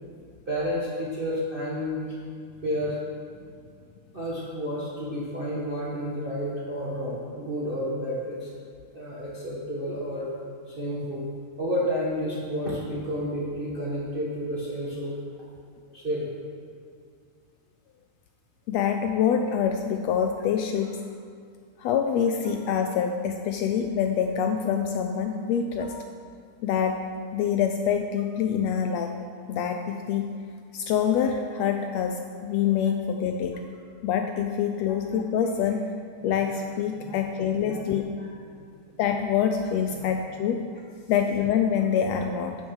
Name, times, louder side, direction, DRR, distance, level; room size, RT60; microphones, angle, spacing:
voice 1, 0.5-2.1 2.6-3.0 4.1-8.5 8.9-10.3 10.7-11.3 11.6-15.1 15.9-16.3 25.8-25.9 36.9-37.2 37.6-37.8 38.2-38.7 39.9-40.0, equal, 70° right, -7 dB, 0.5 m, -31 dB
voice 2, 18.7-21.0 21.8-25.9 26.6-27.0 27.3-29.1 29.5-30.4 30.7-33.5 34.0-35.9 36.2-38.1 39.0-40.6 41.1-42.6, left 8 dB, 85° left, 5 dB, 1.5 m, -25 dB
10.5 x 6.6 x 6.3 m, 2.2 s
omnidirectional pair, 3.5 m